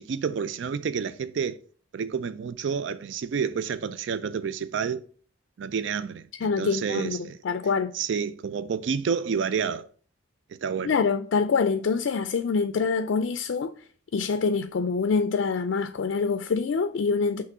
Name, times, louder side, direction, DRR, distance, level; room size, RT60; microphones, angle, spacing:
voice 1, 0.0-1.6 1.9-5.0 5.6-7.4 7.9-9.9 10.6-10.9, right 6 dB, 70° right, 0.4 m, -29 dB
voice 2, 6.4-7.9 10.8-13.7 14.1-17.4, left 5 dB, 70° left, 0.4 m, -25 dB
5.9 x 3.1 x 5.5 m
head